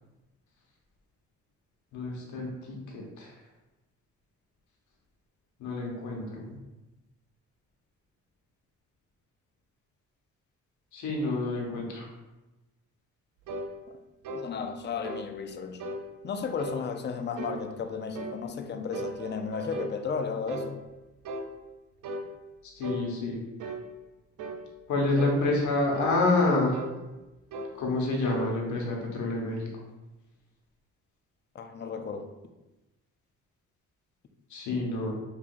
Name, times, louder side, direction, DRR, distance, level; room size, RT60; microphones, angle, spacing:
voice 1, 1.9-3.3 5.6-6.5 10.9-12.1 22.6-23.4 24.9-26.8 27.8-29.7 34.5-35.1, left 2 dB, 75° left, 1.1 m, -28 dB
sound 1, 13.5-13.7 14.2-14.5 15.0-15.3 15.8-16.0 16.6-16.8 17.4-17.6 18.1-18.4 18.9-20.0 20.5-20.7 21.2-21.5 22.0-22.3 22.8-23.1 23.6-23.9 24.4-24.6 25.2-25.4 25.9-26.2 26.7-27.0 27.5-27.7 28.3-28.5, right 2 dB, 90° right, 0.5 m, -36 dB
voice 2, 14.3-15.8 16.2-20.8 31.5-32.3, left 5 dB, 35° left, 0.5 m, -34 dB
5.8 x 2.7 x 2.5 m
cardioid pair, 90°, 30 cm